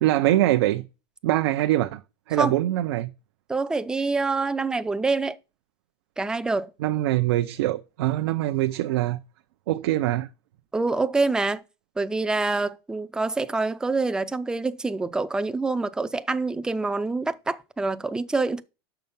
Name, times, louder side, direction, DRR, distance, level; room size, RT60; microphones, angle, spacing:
voice 1, 0.0-0.9 1.2-2.0 2.3-3.1 6.8-9.2 9.7-10.3, right 15 dB, 75° right, 0.6 m, -23 dB
voice 2, 3.5-5.4 6.2-6.7 10.7-11.6 12.0-18.6, right 3 dB, 5° right, 0.4 m, -26 dB
6.5 x 5.7 x 5.4 m
supercardioid pair, 145°, 13 cm